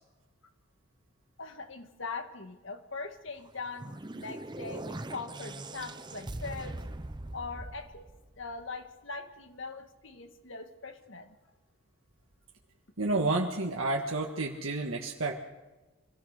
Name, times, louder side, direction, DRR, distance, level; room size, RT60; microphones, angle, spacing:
voice 1, 1.4-6.8 7.3-8.1 8.4-11.3, left 4 dB, 65° left, 7 dB, 1.7 m, -41 dB
sound 1, 3.4-8.8, right 1 dB, 20° right, 0.7 m, -42 dB
voice 2, 13.0-15.4, right 2 dB, 80° right, 0 dB, 1.7 m, -30 dB
25.5 x 17.0 x 6.6 m, 1.1 s
head